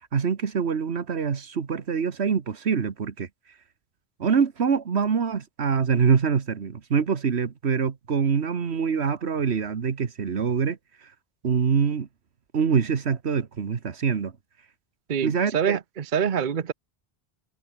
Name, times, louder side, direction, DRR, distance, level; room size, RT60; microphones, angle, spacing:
voice 1, 0.0-3.3 4.2-10.8 11.4-12.1 12.5-14.3 15.2-15.8, right 6 dB, 85° right, 1.6 m, -25 dB
voice 2, 15.1-16.7, right 7 dB, 50° right, 1.0 m, -26 dB
omnidirectional pair, 1.1 m